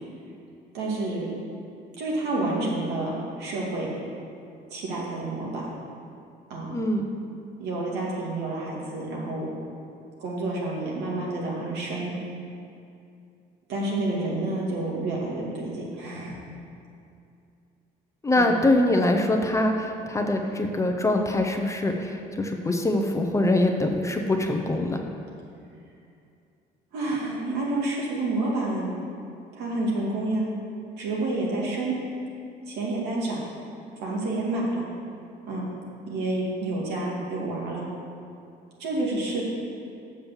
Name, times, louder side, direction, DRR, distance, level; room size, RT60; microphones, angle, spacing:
voice 1, 0.7-1.3 2.0-3.1 3.4-3.9 4.7-6.0 6.5-6.8 7.6-9.5 10.2-12.1 13.7-16.4 18.4-18.5 26.9-28.9 29.6-30.4 31.0-31.9 32.7-33.4 34.0-34.8 35.5-35.6 36.1-37.8 38.8-39.4, right 2 dB, 85° right, -4 dB, 2.4 m, -29 dB
voice 2, 6.7-7.0 18.2-25.0, left 1 dB, 15° left, 3 dB, 0.8 m, -23 dB
7.1 x 6.3 x 7.2 m, 2.5 s
cardioid pair, 110°, 17 cm